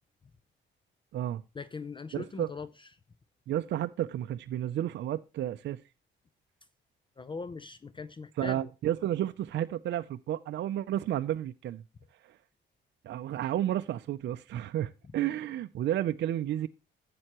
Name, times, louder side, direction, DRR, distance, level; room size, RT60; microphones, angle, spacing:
voice 1, 1.5-2.9 7.2-8.7, left 4 dB, 25° left, 0.5 m, -40 dB
voice 2, 2.1-2.5 3.5-5.8 8.4-11.8 12.2-12.4 13.0-16.7, right 12 dB, 65° right, 0.5 m, -32 dB
12.5 x 7.7 x 3.0 m
cardioid pair, 90°, 20 cm